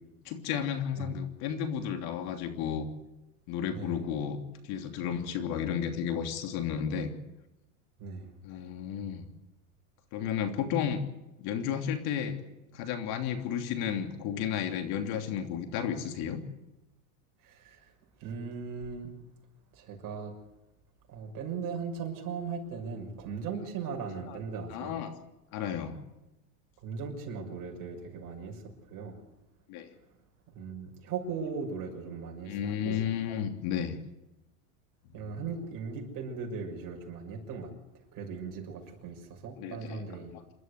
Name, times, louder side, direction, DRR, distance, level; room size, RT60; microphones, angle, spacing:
voice 1, 0.2-2.9 3.5-4.4 4.6-7.1 8.4-9.3 10.1-11.0 11.4-12.4 12.7-16.4 24.2-24.4 24.7-25.1 25.5-26.0 29.7-29.9 32.5-34.0 35.2-35.3 39.6-40.0 40.3-40.4, left 8 dB, 55° left, 6 dB, 3.1 m, -33 dB
voice 2, 3.7-4.0 8.0-8.3 17.4-17.8 18.2-19.1 19.8-20.3 21.1-24.9 26.8-28.6 28.9-29.2 30.5-32.6 32.8-33.0 35.1-37.7 38.1-39.2 39.4-40.3, right 5 dB, 45° right, 2 dB, 6.5 m, -38 dB
28.0 x 13.0 x 8.2 m, 0.98 s
supercardioid pair, 120°, 45 cm